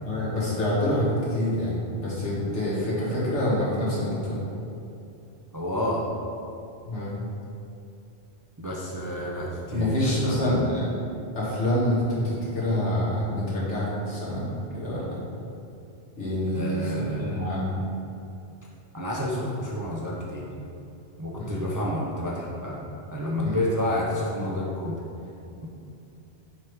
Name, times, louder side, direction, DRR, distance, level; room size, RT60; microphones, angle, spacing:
voice 1, 0.0-4.4 6.8-7.2 9.7-10.8 11.4-15.2 16.2-17.8 21.4-21.5 23.4-23.6, left 1 dB, 90° left, -8 dB, 1.9 m, -26 dB
voice 2, 5.5-6.0 8.6-10.4 16.5-17.5 18.9-20.5 21.2-22.8 23.1-24.9, left 1 dB, 30° right, -4 dB, 0.4 m, -30 dB
6.0 x 3.4 x 4.6 m, 2.8 s
omnidirectional pair, 1.2 m